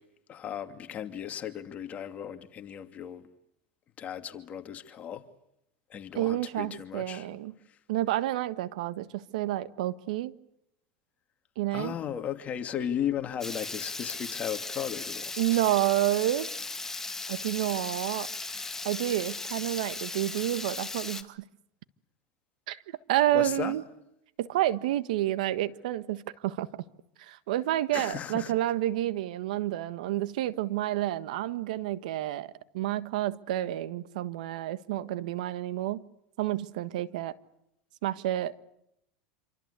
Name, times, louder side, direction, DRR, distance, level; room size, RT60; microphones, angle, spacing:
voice 1, 0.3-3.2 4.0-5.3 5.9-7.4 11.7-15.3 23.3-23.8 27.9-28.5, left 9 dB, 35° left, 2.5 m, -35 dB
voice 2, 6.1-7.5 7.9-10.3 11.6-11.9 15.4-16.5 17.3-18.3 18.8-21.4 22.7-22.8 23.1-23.8 24.4-26.8 27.2-36.0 36.4-37.3 38.0-38.5, right 14 dB, 80° right, 1.5 m, -29 dB
Water tap faucet / Liquid, 13.4-21.2, left 3 dB, 10° left, 2.2 m, -37 dB
27.5 x 25.0 x 8.3 m
supercardioid pair, 105°, 4 cm